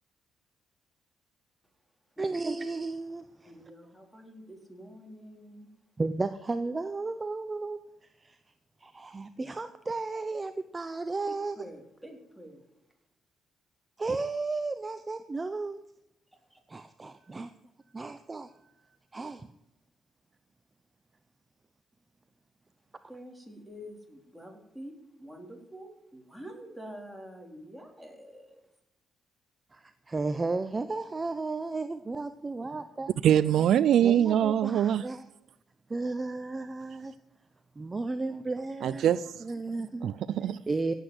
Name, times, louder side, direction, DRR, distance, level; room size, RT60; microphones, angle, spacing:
voice 1, 2.2-3.5 6.0-7.8 8.2-8.4 8.8-11.6 14.0-15.8 16.7-17.5 17.9-18.5 19.1-19.5 29.7-33.1 34.0-35.3 35.9-37.1 37.8-39.0 39.4-40.1 40.7-40.9, right 3 dB, 25° right, 10 dB, 0.8 m, -33 dB
voice 2, 3.4-5.7 11.3-12.6 16.5-16.6 17.0-17.1 23.1-28.6, equal, ahead, 2 dB, 4.0 m, -47 dB
voice 3, 33.2-35.0 38.8-39.3 40.0-40.6, right 10 dB, 70° right, 17 dB, 0.5 m, -23 dB
17.0 x 8.2 x 7.8 m, 0.88 s
cardioid pair, 90°, 0 cm